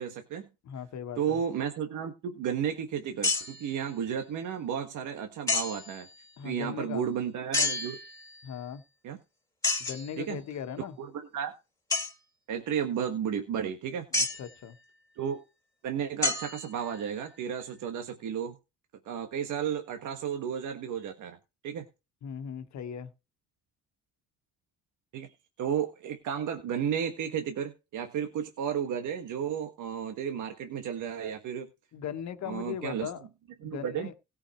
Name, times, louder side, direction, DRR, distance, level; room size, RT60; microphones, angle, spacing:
voice 1, 0.0-0.5 1.2-6.1 6.4-8.0 9.0-9.2 10.2-10.4 10.8-11.5 12.5-14.1 15.2-15.4 15.8-18.5 19.0-21.4 21.6-21.9 25.1-25.3 25.6-31.7 32.4-33.1 33.6-34.1, right 8 dB, 80° right, 1.6 m, -33 dB
voice 2, 0.6-1.4 6.4-7.0 8.4-8.8 9.8-11.0 14.1-14.8 22.2-23.1 31.9-33.2 33.6-34.1, left 8 dB, 65° left, 1.4 m, -38 dB
sound 1, 3.2-3.8 5.5-6.0 7.5-8.4 9.6-10.1 11.9-12.1 14.1-14.5 16.2-17.0, left 3 dB, 10° left, 3.2 m, -30 dB
17.0 x 5.7 x 4.4 m
cardioid pair, 90°, 30 cm